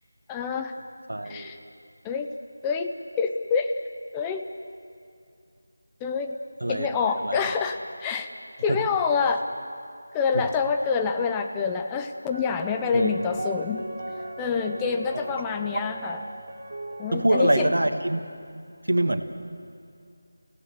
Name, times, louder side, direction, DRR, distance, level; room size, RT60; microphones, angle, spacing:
voice 1, 0.3-0.7 1.3-1.6 2.0-2.3 2.6-3.7 4.1-4.4 6.0-6.4 6.7-8.3 8.6-9.5 10.1-13.8 14.4-16.2 17.0-17.7, left 5 dB, 10° left, 5 dB, 0.6 m, -27 dB
voice 2, 1.1-1.5 6.6-6.9 7.2-7.4 8.7-8.8 12.9-13.1 17.1-18.2 18.9-19.2, right 1 dB, 80° right, 8 dB, 1.5 m, -23 dB
sound 1, 12.3-17.4, right 2 dB, 55° right, 2.1 m, -37 dB
24.0 x 16.5 x 7.9 m, 2.4 s
figure-of-eight pair, 165°, 0 cm